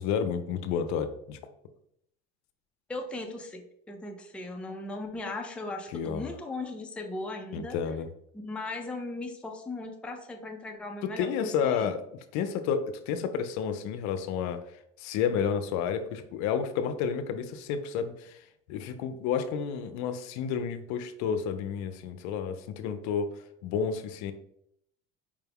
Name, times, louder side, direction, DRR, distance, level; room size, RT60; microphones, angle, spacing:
voice 1, 0.0-1.4 5.9-6.3 7.5-8.1 11.2-12.0 12.3-14.6 15.0-18.4 18.7-24.3, left 7 dB, 70° left, 9 dB, 0.5 m, -31 dB
voice 2, 2.9-7.8 8.3-11.9, left 2 dB, 5° left, 3 dB, 0.4 m, -38 dB
4.8 x 2.2 x 3.4 m, 0.73 s
cardioid pair, 120°, 29 cm